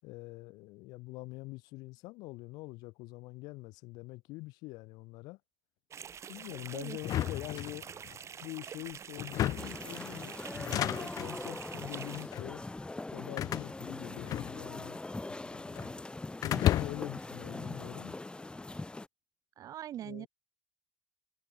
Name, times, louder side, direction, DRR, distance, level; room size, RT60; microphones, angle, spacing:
voice 1, 0.0-5.4 6.3-7.9 8.4-12.6 13.1-15.0 16.6-18.2 20.0-20.3, left 22 dB, 80° left, 6.0 m, -44 dB
sound 1, 5.9-12.3, right 8 dB, 45° right, 0.9 m, -46 dB
sound 2, 7.0-8.2 9.2-9.8 10.5-11.3 12.1-12.5 13.4-14.9 15.1-15.9 16.4-17.2, left 13 dB, 60° left, 0.5 m, -33 dB
sound 3, 9.6-19.1, left 2 dB, 15° left, 1.3 m, -42 dB
voice 2, 19.6-20.3, right 11 dB, 60° right, 1.9 m, -41 dB
supercardioid pair, 75°, 7 cm